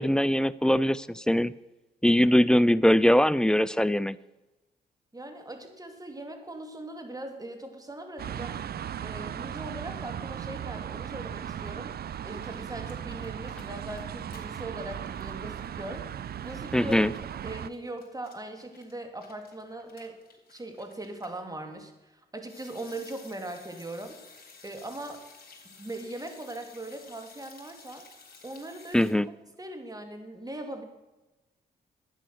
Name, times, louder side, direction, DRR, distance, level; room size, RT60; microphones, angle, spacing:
voice 1, 0.0-1.5 2.0-4.2 16.7-17.1 28.9-29.3, left 1 dB, 5° left, 19 dB, 0.5 m, -22 dB
voice 2, 5.1-8.6 9.0-12.0 12.2-16.1 16.4-17.0 17.4-20.2 20.5-24.2 24.6-25.2 25.6-28.0 28.4-29.2 29.6-30.9, right 1 dB, 20° right, 5 dB, 2.6 m, -40 dB
sound 1, 8.2-17.7, right 9 dB, 55° right, 0.5 m, -37 dB
sound 2, 11.6-11.7 11.9-14.6 14.9-21.4 22.5-29.1, left 4 dB, 50° left, 3.6 m, -54 dB
11.5 x 9.1 x 6.4 m, 1.1 s
supercardioid pair, 50°, 19 cm